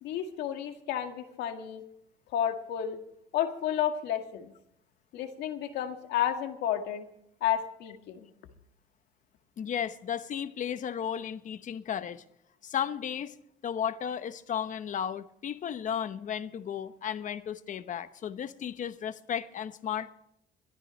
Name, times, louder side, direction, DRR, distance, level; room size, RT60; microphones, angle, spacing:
voice 1, 0.0-1.8 2.3-3.0 3.3-4.5 5.1-7.1 7.4-8.3, left 10 dB, 85° left, 2.0 m, -31 dB
voice 2, 9.6-12.2 12.6-13.3 13.6-20.1, left 8 dB, 50° left, 1.0 m, -34 dB
22.5 x 13.5 x 3.2 m
cardioid pair, 110°, 17 cm